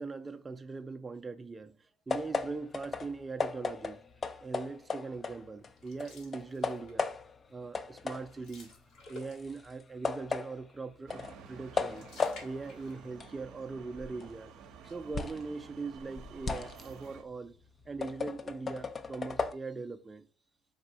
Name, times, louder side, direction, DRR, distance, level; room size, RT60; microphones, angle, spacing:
voice 1, 0.0-1.7 2.1-4.0 4.4-7.1 7.5-8.7 9.1-12.1 12.4-14.5 14.9-17.5 17.9-20.3, right 4 dB, 20° right, 0.5 m, -41 dB
sound 1, 2.1-5.7 6.0-7.5 7.7-15.5 15.9-19.5, left 5 dB, 30° left, 0.5 m, -37 dB
sound 2, 5.7-7.1 7.5-7.7 8.0-9.7 11.5-13.3 13.6-13.7 14.6-15.4, left 3 dB, 70° left, 1.6 m, -55 dB
sound 3, 11.1-17.2, right 7 dB, 70° right, 0.7 m, -52 dB
4.2 x 2.6 x 4.0 m
supercardioid pair, 90°, 0 cm